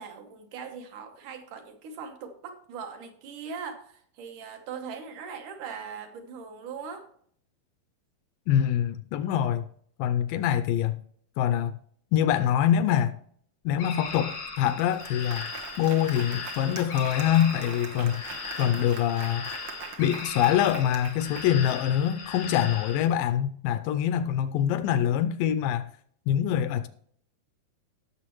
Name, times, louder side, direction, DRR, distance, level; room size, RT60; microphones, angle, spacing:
voice 1, 0.0-7.1, right 6 dB, 65° right, 2.4 m, -40 dB
voice 2, 8.5-9.6 10.0-11.0 11.4-11.7 12.1-13.1 13.7-15.5 15.8-18.2 18.6-19.5 20.0-25.9 26.3-26.9, left 10 dB, 80° left, 2.0 m, -24 dB
sound 1, 13.8-23.1, left 4 dB, 60° left, 1.1 m, -38 dB
Applause, 14.3-14.4 14.7-22.2, right 5 dB, 85° right, 1.1 m, -43 dB
17.0 x 6.8 x 3.0 m
omnidirectional pair, 4.3 m